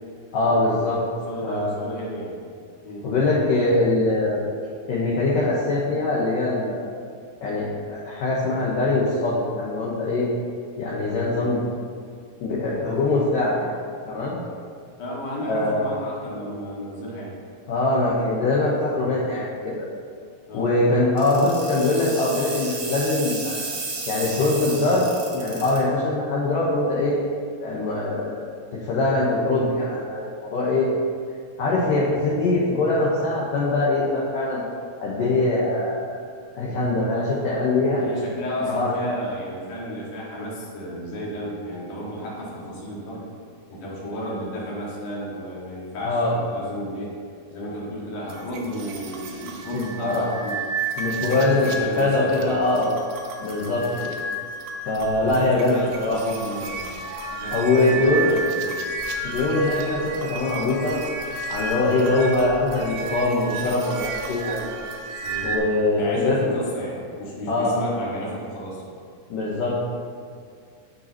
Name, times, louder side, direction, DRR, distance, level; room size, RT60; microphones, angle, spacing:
voice 1, 0.3-1.0 1.4-1.9 3.0-4.4 4.9-6.9 7.4-10.3 10.8-11.6 12.4-13.7 14.1-14.4 15.4-15.8 17.7-19.9 20.5-23.7 24.1-25.1 25.3-27.2 27.6-28.4 28.8-30.9 31.6-34.6 35.0-36.0 36.5-38.0 38.7-38.9 46.0-46.3 49.7-50.3 51.0-52.9 53.4-54.1 54.9-56.2 57.5-58.3 59.2-61.0 61.5-64.6 65.4-66.5 67.5-67.8 69.3-69.8, left 2 dB, 75° left, -7 dB, 1.9 m, -22 dB
voice 2, 1.3-2.4 2.8-3.1 11.3-11.5 15.0-17.4 19.0-19.1 20.5-20.7 32.1-32.3 38.0-43.3 43.7-47.1 47.5-50.6 51.1-52.8 53.5-53.7 54.9-58.7 65.2-65.6 65.9-68.8, equal, 55° left, -6 dB, 2.9 m, -33 dB
sound 1, 21.2-25.8, right 3 dB, 60° right, 1.6 m, -32 dB
sound 2, 48.3-65.6, right 3 dB, 85° right, 2.1 m, -32 dB
15.0 x 5.4 x 2.9 m, 2.1 s
omnidirectional pair, 5.3 m